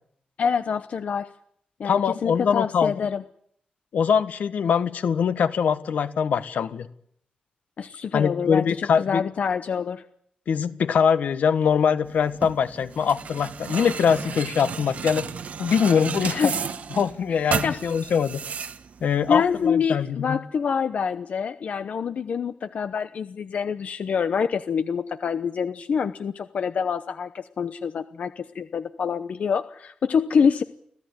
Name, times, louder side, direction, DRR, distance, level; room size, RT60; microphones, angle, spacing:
voice 1, 0.4-1.3 1.8-3.2 7.8-10.0 16.2-16.5 17.3-17.8 19.3-30.6, left 6 dB, 60° left, 11 dB, 0.9 m, -26 dB
voice 2, 1.8-3.1 3.9-6.9 8.1-9.2 10.5-15.3 15.6-16.5 17.0-18.4 19.0-20.4, left 7 dB, 85° left, 12 dB, 1.5 m, -23 dB
sound 1, 12.0-19.7, right 6 dB, 65° right, 1.3 m, -33 dB
25.5 x 16.0 x 9.7 m, 0.69 s
wide cardioid pair, 150°, 3 cm